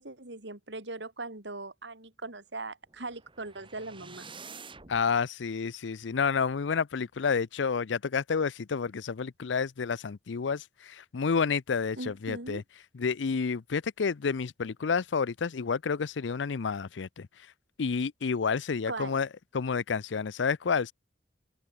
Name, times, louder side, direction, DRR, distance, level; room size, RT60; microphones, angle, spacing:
voice 1, 0.0-4.2 12.0-12.6 18.9-19.2, right 2 dB, 70° right, 3.5 m, -40 dB
sound 1, 2.9-5.1, right 4 dB, 30° right, 6.7 m, -48 dB
voice 2, 4.9-12.6 12.9-17.3 17.8-19.3 19.5-20.9, left 5 dB, 85° left, 0.5 m, -30 dB
head